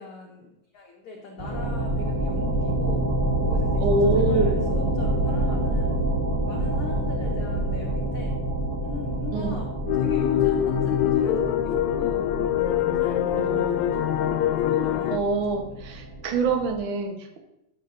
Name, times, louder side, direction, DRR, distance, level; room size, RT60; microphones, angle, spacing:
voice 1, 0.0-3.0 3.5-6.0 6.5-8.4 8.8-12.2 12.6-14.3 14.6-15.2 15.7-15.8, left 2 dB, 60° left, -2 dB, 1.5 m, -41 dB
sound 1, 1.4-16.8, right 1 dB, 25° right, 1.1 m, -27 dB
voice 2, 3.8-4.5 9.3-9.6 13.3-13.7 15.1-17.4, right 3 dB, 70° right, 3 dB, 1.2 m, -25 dB
sound 2, 9.9-15.2, left 11 dB, 85° left, 1.6 m, -24 dB
14.0 x 6.2 x 2.6 m, 0.85 s
omnidirectional pair, 3.7 m